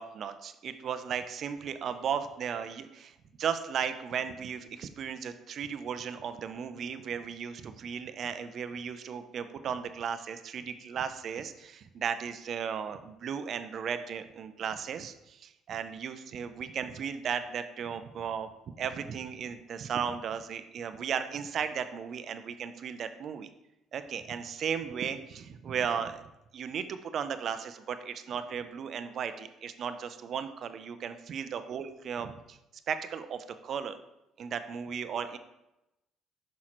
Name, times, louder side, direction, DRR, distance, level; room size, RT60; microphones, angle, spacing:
voice 1, 0.0-18.5 18.8-23.5 23.9-26.2 26.5-32.6 32.9-34.0 34.4-35.4, right 7 dB, 60° right, 11 dB, 0.5 m, -35 dB
6.1 x 5.7 x 3.0 m, 0.91 s
supercardioid pair, 70°, 0 cm